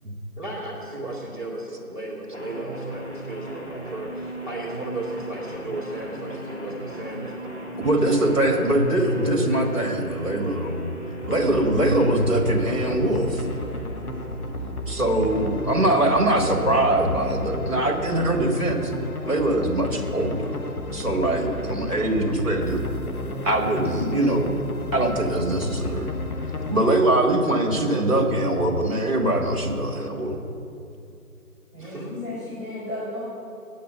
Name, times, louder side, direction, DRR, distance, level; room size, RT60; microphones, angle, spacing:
voice 1, 0.4-9.7 31.8-32.3, right 1 dB, 35° right, -7 dB, 2.1 m, -35 dB
sound 1, 2.3-15.3, right 2 dB, 45° left, 1.3 m, -38 dB
voice 2, 7.8-10.9 11.3-13.5 14.9-18.9 19.2-20.6 20.9-22.8 23.4-24.6 24.9-26.1 26.7-30.4, right 1 dB, 60° right, 2 dB, 1.7 m, -22 dB
sound 2, 11.2-27.0, left 1 dB, 75° left, 1.2 m, -33 dB
voice 3, 31.7-33.2, left 2 dB, 5° left, -23 dB, 3.2 m, -34 dB
9.1 x 8.5 x 7.4 m, 2.7 s
figure-of-eight pair, 175°, 45 cm